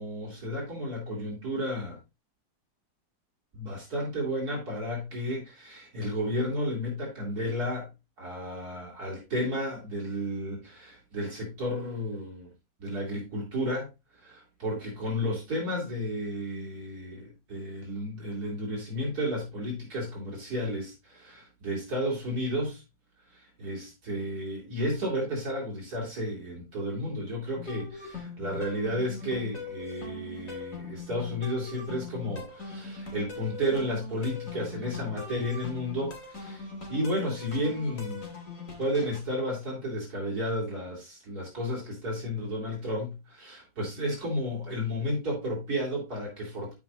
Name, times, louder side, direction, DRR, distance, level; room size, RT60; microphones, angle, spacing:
voice 1, 0.0-2.0 3.5-7.9 8.2-12.5 12.8-22.8 23.3-38.3 38.8-46.7, equal, 55° right, 3.2 m, -32 dB
sound 1, 27.6-39.2, left 4 dB, 45° left, 2.4 m, -41 dB
13.0 x 5.4 x 2.4 m
omnidirectional pair, 2.0 m